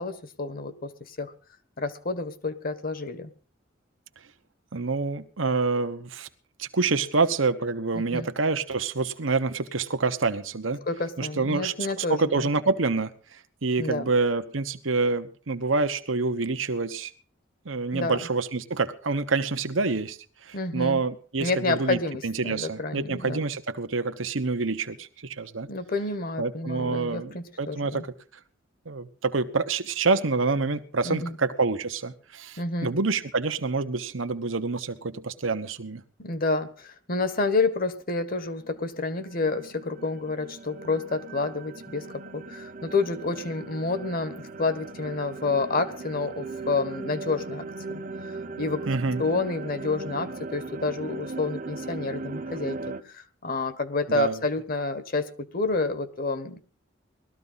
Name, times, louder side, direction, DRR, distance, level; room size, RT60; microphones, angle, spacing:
voice 1, 0.0-1.3 1.8-3.3 7.9-8.3 10.9-12.5 13.8-14.1 17.9-18.2 20.5-21.0 21.4-23.4 25.7-28.0 31.0-31.4 32.6-33.0 36.2-48.0 48.6-48.9 49.2-56.6, left 3 dB, 50° left, 11 dB, 1.4 m, -29 dB
voice 2, 4.7-6.3 6.6-10.8 11.2-17.1 17.6-25.7 26.4-28.1 28.9-36.0 48.9-49.2 54.1-54.4, right 3 dB, 90° right, 9 dB, 1.1 m, -27 dB
sound 1, 38.5-53.0, right 3 dB, 45° right, 0.9 m, -38 dB
19.5 x 13.5 x 4.1 m, 0.39 s
head